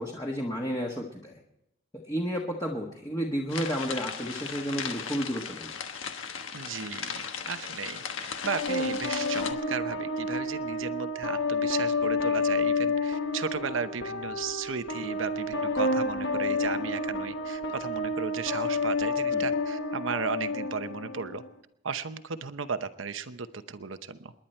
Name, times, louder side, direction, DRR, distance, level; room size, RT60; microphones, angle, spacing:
voice 1, 0.0-1.4 1.9-5.7 19.3-19.5, equal, 20° left, -1 dB, 1.4 m, -32 dB
sound 1, 3.5-9.5, left 6 dB, 85° left, 1.3 m, -37 dB
voice 2, 6.5-21.4 21.8-24.3, right 5 dB, 85° right, 11 dB, 0.9 m, -35 dB
sound 2, 8.5-21.5, left 3 dB, 65° left, 1.1 m, -30 dB
28.5 x 11.0 x 4.4 m, 0.85 s
head